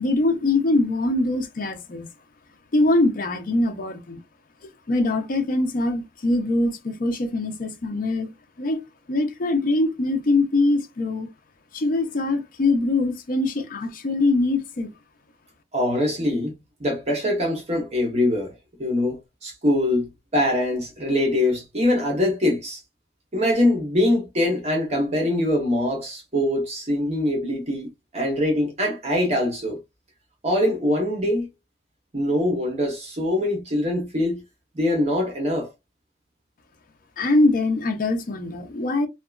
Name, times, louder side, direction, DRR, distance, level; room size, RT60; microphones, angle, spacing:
voice 1, 0.0-2.1 2.7-4.2 4.9-8.3 8.6-8.8 9.1-11.3 11.7-14.9 37.2-39.1, left 2 dB, 50° left, 0.5 m, -23 dB
voice 2, 15.7-16.5 16.8-18.5 18.8-22.8 23.3-27.9 28.1-29.8 30.4-31.5 32.1-34.4 34.7-35.7, left 1 dB, 35° right, 0.9 m, -23 dB
2.8 x 2.3 x 2.3 m
head